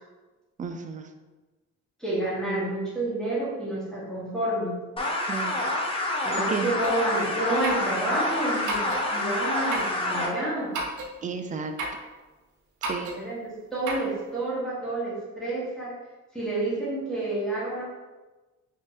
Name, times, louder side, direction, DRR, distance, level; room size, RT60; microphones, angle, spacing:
voice 1, 0.6-1.1 5.3-5.7 6.4-6.7 11.2-11.8 12.8-13.2, right 5 dB, 25° right, 7 dB, 0.4 m, -33 dB
voice 2, 2.0-4.7 6.2-10.7 13.1-13.4 13.7-15.9 16.3-17.8, right 2 dB, ahead, -9 dB, 1.4 m, -29 dB
sound 1, 5.0-10.3, left 2 dB, 20° left, 0.7 m, -28 dB
sound 2, 6.8-7.0 7.6-7.9 8.7-9.1 9.7-10.0 10.7-11.1 11.8-12.0 12.8-13.2 13.9-14.1, right 2 dB, 75° right, 0.7 m, -32 dB
3.5 x 3.1 x 2.6 m, 1.2 s
cardioid pair, 90°, 30 cm